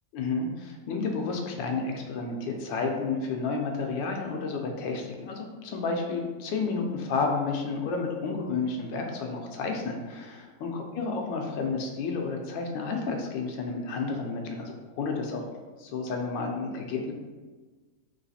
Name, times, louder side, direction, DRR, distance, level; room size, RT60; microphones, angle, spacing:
voice 1, 0.1-15.4 15.8-17.1, left 4 dB, 80° left, 2 dB, 1.3 m, -31 dB
4.0 x 3.1 x 4.1 m, 1.3 s
omnidirectional pair, 2.1 m